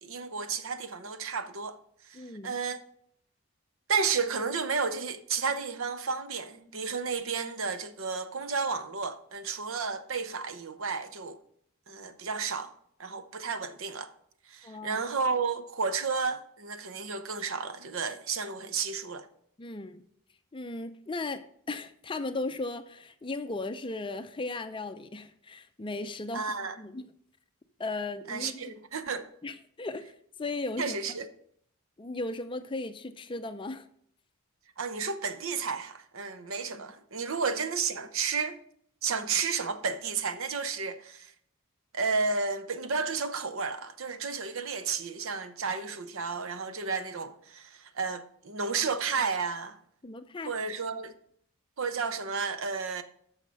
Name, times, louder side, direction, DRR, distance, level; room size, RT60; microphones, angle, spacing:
voice 1, 0.0-1.8 2.1-2.8 3.9-11.4 11.9-12.7 13.0-14.1 14.5-19.3 26.3-26.8 28.3-29.3 30.8-31.3 34.8-38.6 39.0-41.3 41.9-49.8 50.4-51.1 51.8-53.0, right 5 dB, 65° right, 0.7 m, -32 dB
voice 2, 2.1-2.5 14.6-15.0 19.6-20.0 20.5-26.4 26.8-27.1 27.8-28.7 29.4-30.1 30.4-31.0 32.0-33.9 36.7-36.8 50.0-50.5, left 2 dB, 20° left, 0.5 m, -36 dB
8.8 x 6.4 x 5.2 m
head